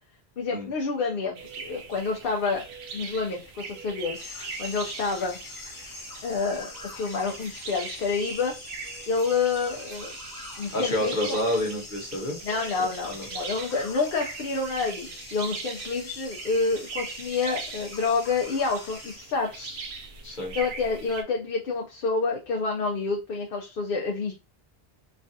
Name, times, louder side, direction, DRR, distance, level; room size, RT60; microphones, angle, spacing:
voice 1, 0.4-2.7 2.9-4.2 4.6-5.4 6.2-8.5 9.1-10.2 10.6-11.4 12.4-19.7 20.5-24.3, left 4 dB, 65° left, 0 dB, 0.7 m, -28 dB
sound 1, 1.3-21.2, right 4 dB, 80° right, 0.8 m, -41 dB
sound 2, 4.1-19.2, left 3 dB, 30° left, 0.4 m, -44 dB
voice 2, 10.7-12.4 13.0-13.3 19.6-19.8 20.2-20.5, left 1 dB, 50° left, 0 dB, 1.2 m, -29 dB
3.2 x 2.4 x 2.6 m, 0.30 s
omnidirectional pair, 1.0 m